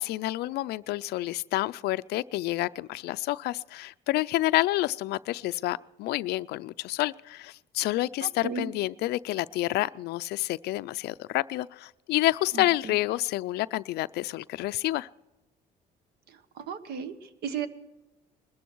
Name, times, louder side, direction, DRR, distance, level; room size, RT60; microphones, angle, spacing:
voice 1, 0.0-15.1, left 17 dB, 75° left, 15 dB, 0.4 m, -29 dB
voice 2, 8.2-8.7 12.5-13.0 16.3-17.7, right 6 dB, 70° right, 12 dB, 1.3 m, -35 dB
21.0 x 13.5 x 4.6 m, 1.0 s
cardioid pair, 110°, 17 cm